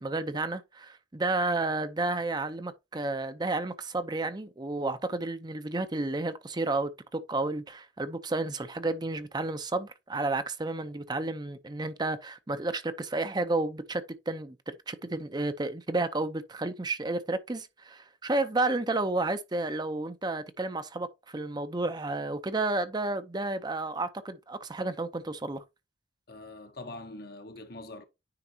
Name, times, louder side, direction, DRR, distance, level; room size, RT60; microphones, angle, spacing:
voice 1, 0.0-25.6, right 2 dB, 25° right, 0.6 m, -31 dB
voice 2, 26.3-28.0, left 2 dB, 55° left, 1.2 m, -43 dB
9.7 x 4.0 x 2.7 m
head